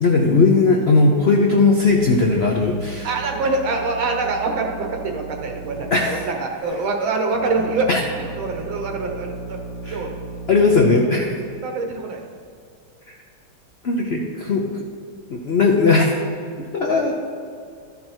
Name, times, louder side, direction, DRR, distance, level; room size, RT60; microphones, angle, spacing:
voice 1, 0.0-3.1 5.9-6.2 7.9-8.0 9.8-10.0 10.5-11.4 13.8-14.6 15.3-16.1 16.7-17.1, left 3 dB, 85° left, 0 dB, 0.5 m, -17 dB
sound 1, 1.8-6.6 7.3-10.8, right 3 dB, 60° left, 1.2 m, -36 dB
voice 2, 3.0-7.9 8.2-9.6 9.9-10.2 11.0-11.3 11.6-12.2, right 3 dB, 80° right, 3 dB, 1.9 m, -25 dB
12.0 x 5.5 x 4.5 m, 2.3 s
omnidirectional pair, 2.2 m